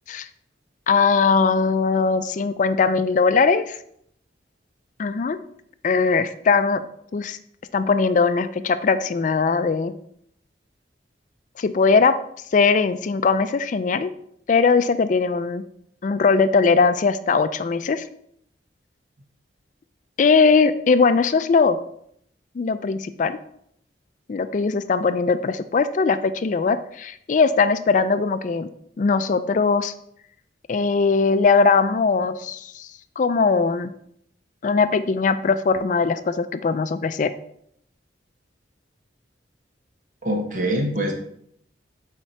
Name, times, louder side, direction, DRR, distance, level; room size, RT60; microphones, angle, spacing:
voice 1, 0.9-3.8 5.0-5.4 5.8-6.8 7.1-7.4 7.7-9.9 11.6-12.2 12.5-14.1 14.5-15.6 16.0-18.0 20.2-21.8 22.6-23.4 24.3-28.7 29.0-29.9 30.7-32.9 33.2-33.9 34.6-37.3, left 4 dB, 45° left, 12 dB, 0.4 m, -20 dB
voice 2, 40.2-41.1, equal, 45° right, 2 dB, 1.2 m, -24 dB
7.3 x 4.4 x 4.4 m, 0.71 s
head